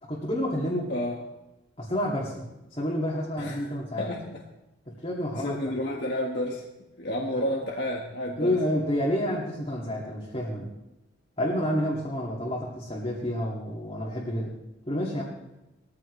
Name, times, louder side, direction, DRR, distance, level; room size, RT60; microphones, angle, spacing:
voice 1, 0.0-0.9 1.8-4.1 4.9-5.6 7.3-7.4 8.4-10.7 11.4-14.5 14.9-15.2, equal, 25° left, -5 dB, 2.4 m, -29 dB
voice 2, 0.9-1.2 3.4-4.4 5.4-6.6 7.0-8.6, left 1 dB, 55° left, -1 dB, 1.6 m, -31 dB
20.5 x 14.5 x 3.3 m, 0.98 s
head